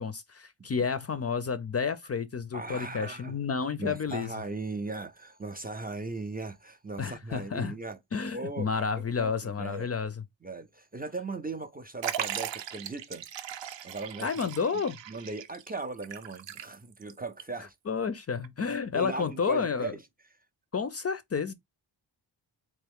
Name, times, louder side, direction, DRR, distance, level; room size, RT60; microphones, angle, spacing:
voice 1, 0.0-4.3 7.0-7.7 8.1-10.1 14.2-15.0 17.9-19.9 20.7-21.5, left 5 dB, 35° left, 0.4 m, -30 dB
voice 2, 2.5-3.4 3.8-8.0 8.3-8.8 9.2-9.9 10.4-13.3 13.8-14.3 15.1-17.7 18.9-20.0, right 3 dB, 20° right, 0.4 m, -38 dB
Liquid, 12.0-17.1 17.4-17.5 18.4-18.5, right 10 dB, 80° right, 0.7 m, -38 dB
3.5 x 3.0 x 3.4 m
wide cardioid pair, 100°, 44 cm